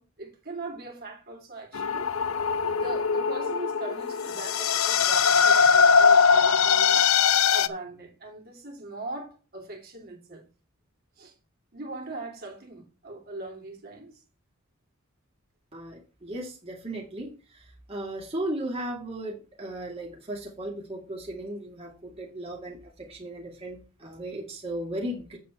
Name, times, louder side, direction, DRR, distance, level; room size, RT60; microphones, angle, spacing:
voice 1, 0.0-2.1 2.6-10.5 11.2-11.3 11.7-14.2, right 2 dB, 50° right, 3.1 m, -40 dB
sound 1, 1.7-7.7, left 6 dB, 85° left, 0.7 m, -21 dB
voice 2, 15.7-25.4, right 1 dB, 30° right, 2.4 m, -36 dB
8.7 x 7.6 x 4.4 m
head